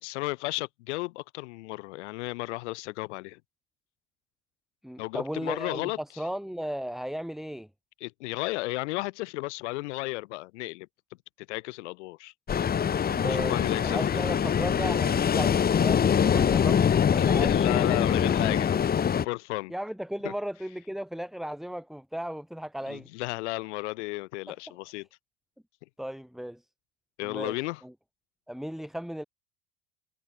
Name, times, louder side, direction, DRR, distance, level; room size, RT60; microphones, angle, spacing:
voice 1, 0.0-3.4 5.0-6.0 8.0-10.9 11.5-12.3 13.3-14.2 17.2-18.9 19.2-19.7 20.2-20.3 22.9-25.1 27.2-27.8, left 22 dB, 80° left, 2.9 m, -34 dB
voice 2, 4.8-7.7 13.1-13.6 13.8-17.5 18.5-18.6 19.7-23.1 24.5-24.6 26.0-26.6 27.2-27.5 27.8-27.9 28.5-29.2, equal, ahead, 3.3 m, -35 dB
Ocean, 12.5-19.2, left 8 dB, 25° left, 1.5 m, -24 dB
supercardioid pair, 110°, 35 cm